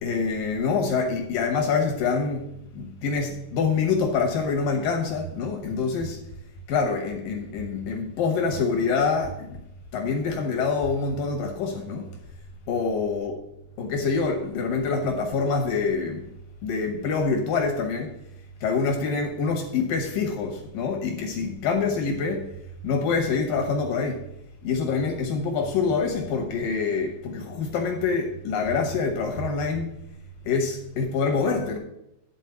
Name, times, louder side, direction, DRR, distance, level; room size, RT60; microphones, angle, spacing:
voice 1, 0.0-2.5 2.7-6.2 6.7-9.6 9.9-12.1 12.7-13.4 13.8-16.3 16.6-18.1 18.6-22.5 22.8-24.2 24.6-30.0 30.4-31.8, left 4 dB, 70° left, 2.2 m, -26 dB
11.5 x 4.1 x 6.9 m
omnidirectional pair, 4.9 m